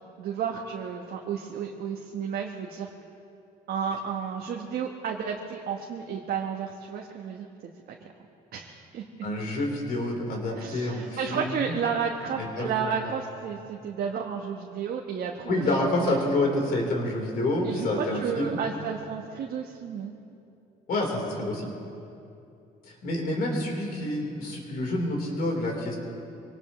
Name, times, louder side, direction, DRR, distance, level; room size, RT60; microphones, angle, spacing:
voice 1, 0.2-2.9 3.7-7.5 8.5-9.1 10.5-16.2 17.6-20.1, right 7 dB, 65° right, 0 dB, 1.2 m, -32 dB
voice 2, 9.2-11.7 12.4-12.9 15.5-18.6 20.9-21.7 22.8-26.0, left 2 dB, 60° left, 0 dB, 3.9 m, -28 dB
24.0 x 18.5 x 3.2 m, 2.7 s
cardioid pair, 110°, 17 cm